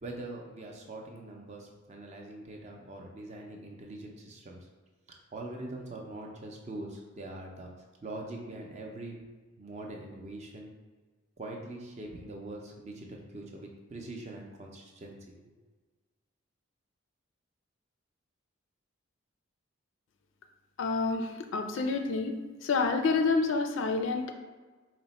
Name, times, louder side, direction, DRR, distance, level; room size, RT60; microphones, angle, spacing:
voice 1, 0.0-4.7 5.1-7.7 8.0-9.2 9.6-10.7 11.4-15.6, right 2 dB, 30° right, 0 dB, 0.5 m, -43 dB
voice 2, 20.8-24.3, left 4 dB, 65° left, 5 dB, 0.3 m, -28 dB
4.0 x 2.0 x 4.0 m, 1.3 s
head